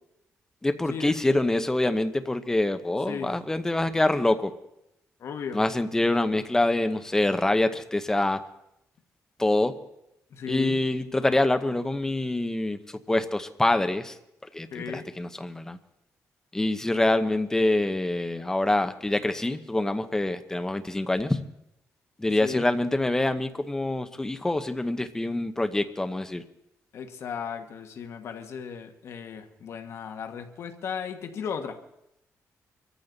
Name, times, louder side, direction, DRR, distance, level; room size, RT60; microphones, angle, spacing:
voice 1, 0.6-4.5 5.5-8.4 9.4-9.7 10.5-12.8 13.1-14.1 14.5-15.8 16.5-21.4 22.2-26.4, left 2 dB, 10° left, 8 dB, 0.8 m, -25 dB
voice 2, 5.2-5.6 10.3-10.8 14.7-15.1 22.4-22.7 26.9-31.8, left 6 dB, 60° left, 6 dB, 1.4 m, -35 dB
24.5 x 14.0 x 4.0 m, 0.82 s
wide cardioid pair, 165°, 5 cm